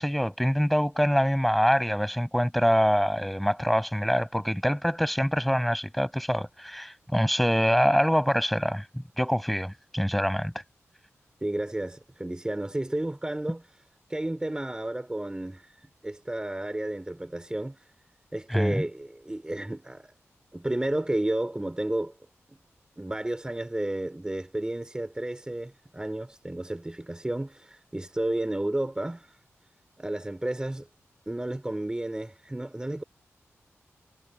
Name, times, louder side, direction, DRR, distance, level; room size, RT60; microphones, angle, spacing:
voice 1, 0.0-8.8 9.2-10.5 18.5-18.9, equal, ahead, 5.9 m, -25 dB
voice 2, 11.4-13.7 14.1-15.7 16.0-17.9 18.3-20.1 20.5-22.1 22.5-22.6 23.0-29.3 30.0-30.9 31.3-33.0, right 1 dB, 15° right, 4.7 m, -32 dB
wide cardioid pair, 95°, 5 cm